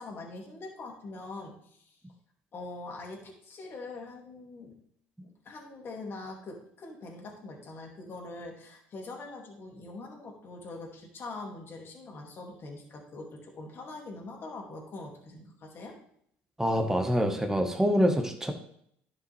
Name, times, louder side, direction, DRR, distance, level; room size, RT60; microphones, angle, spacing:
voice 1, 0.0-2.0 2.5-4.8 5.2-16.0, left 3 dB, 45° left, 0 dB, 2.4 m, -43 dB
voice 2, 16.6-18.5, equal, 10° right, 4 dB, 1.3 m, -25 dB
10.5 x 5.4 x 3.4 m, 0.67 s
hypercardioid pair, 70°, 5 cm